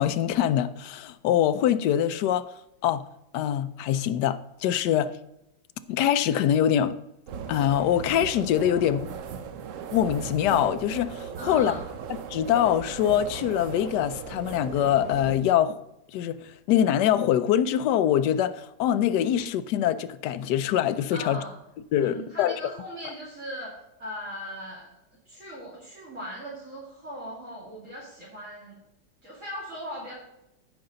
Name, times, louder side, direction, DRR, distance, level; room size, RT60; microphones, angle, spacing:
voice 1, 0.0-2.5 2.8-3.1 3.3-5.1 5.9-7.0 7.5-9.1 9.9-11.7 12.3-15.8 16.1-21.4 21.9-22.6, left 10 dB, 75° left, 1.1 m, -24 dB
sound 1, 7.3-15.4, right 6 dB, 65° right, 0.8 m, -37 dB
voice 2, 11.4-11.9 21.1-21.5 22.0-24.9 25.3-28.8 29.2-30.1, equal, 45° right, 2.7 m, -38 dB
14.5 x 5.3 x 3.9 m
omnidirectional pair, 1.9 m